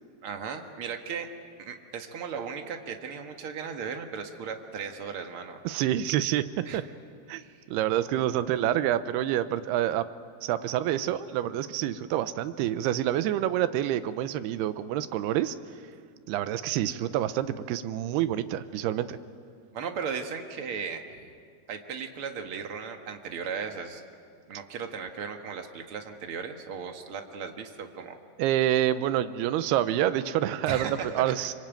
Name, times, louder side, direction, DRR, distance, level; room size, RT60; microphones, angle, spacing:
voice 1, 0.2-1.3 1.6-5.6 6.7-6.8 7.3-7.6 19.7-21.0 21.7-24.0 24.5-28.2 30.6-31.5, right 6 dB, 55° right, 5 dB, 1.5 m, -36 dB
voice 2, 5.6-6.8 7.3-7.4 7.7-10.1 10.4-15.6 16.3-19.2 28.4-31.5, right 12 dB, 80° right, 12 dB, 2.8 m, -27 dB
25.0 x 24.5 x 9.0 m, 2.2 s
omnidirectional pair, 4.8 m